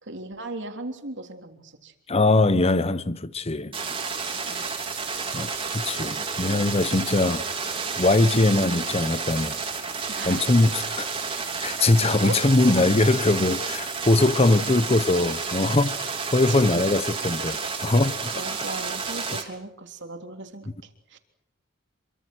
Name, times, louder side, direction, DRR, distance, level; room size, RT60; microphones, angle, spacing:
voice 1, 0.0-1.9 4.5-4.7 10.1-10.5 12.2-12.4 16.5-16.6 18.3-21.2, right 2 dB, 60° right, 3.4 m, -37 dB
voice 2, 2.1-3.7 5.3-7.5 8.0-9.6 10.3-11.1 11.6-18.3, left 2 dB, 30° left, 0.9 m, -22 dB
sound 1, 3.7-19.4, right 5 dB, 25° right, 3.7 m, -31 dB
27.0 x 24.5 x 6.2 m
head